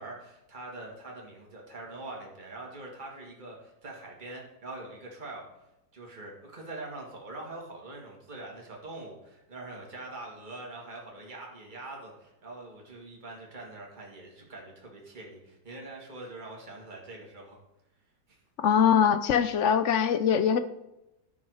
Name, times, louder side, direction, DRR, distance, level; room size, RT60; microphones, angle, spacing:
voice 1, 0.0-5.4 5.9-17.6 18.3-18.4, right 2 dB, 30° right, -1 dB, 2.3 m, -43 dB
voice 2, 18.6-20.6, left 7 dB, 60° left, 13 dB, 0.8 m, -22 dB
11.5 x 6.3 x 6.4 m, 0.90 s
omnidirectional pair, 1.7 m